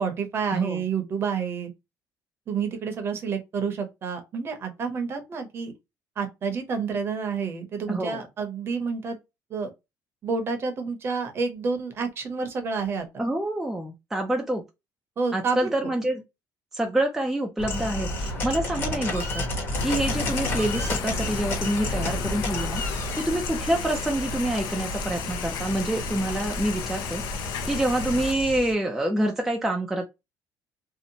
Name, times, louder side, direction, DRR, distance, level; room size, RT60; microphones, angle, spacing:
voice 1, 0.0-1.7 2.5-5.7 6.2-9.2 9.5-9.7 10.2-13.2 15.2-15.7, right 5 dB, 35° right, 0.7 m, -29 dB
voice 2, 7.9-8.2 13.2-14.6 15.3-16.2 16.7-19.5 19.8-22.8 23.2-27.2 27.7-30.0, right 1 dB, 5° right, 0.3 m, -27 dB
sound 1, 17.6-28.7, left 1 dB, 30° left, 1.0 m, -32 dB
Thunder / Rain, 19.8-28.3, left 6 dB, 70° left, 0.4 m, -34 dB
2.7 x 2.1 x 2.7 m
cardioid pair, 160°, 7 cm